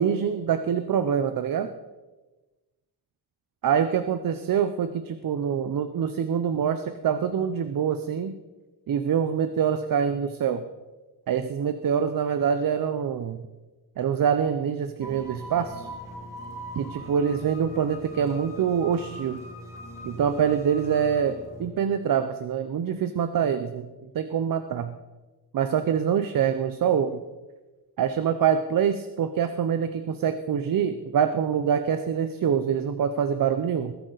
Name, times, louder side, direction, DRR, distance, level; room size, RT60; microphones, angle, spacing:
voice 1, 0.0-1.7 3.6-8.3 8.9-10.6 11.3-13.4 14.0-15.9 16.8-19.4 20.0-25.0 25.5-27.2 28.0-33.9, right 8 dB, 50° right, 10 dB, 0.7 m, -25 dB
sound 1, 15.0-21.7, equal, 10° right, 3.7 m, -41 dB
20.5 x 10.5 x 4.0 m, 1.2 s
wide cardioid pair, 160°, 42 cm